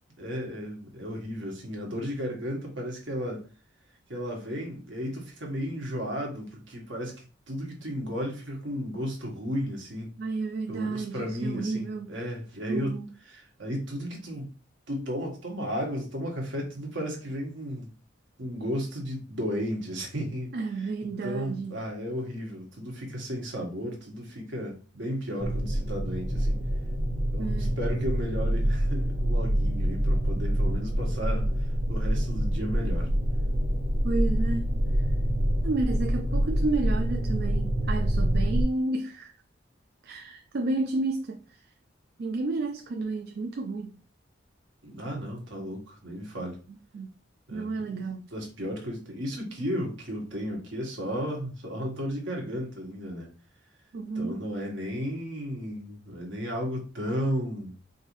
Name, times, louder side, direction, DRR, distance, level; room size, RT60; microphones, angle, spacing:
voice 1, 0.2-3.4 4.1-10.1 10.7-13.0 13.3-14.5 14.9-17.9 18.4-20.5 21.0-26.6 27.3-33.1 44.8-46.6 47.5-48.0 48.3-53.3 54.1-57.7, equal, 70° right, 1.4 m, -34 dB
voice 2, 10.2-12.1 12.7-13.1 20.5-21.8 27.4-27.8 34.0-35.1 35.6-39.3 40.0-41.7 42.2-44.0 46.9-47.1 47.5-48.3 53.9-54.4, right 3 dB, 55° right, 0.4 m, -31 dB
sound 1, 25.4-38.6, equal, 30° right, 0.7 m, -26 dB
4.6 x 2.7 x 3.1 m
head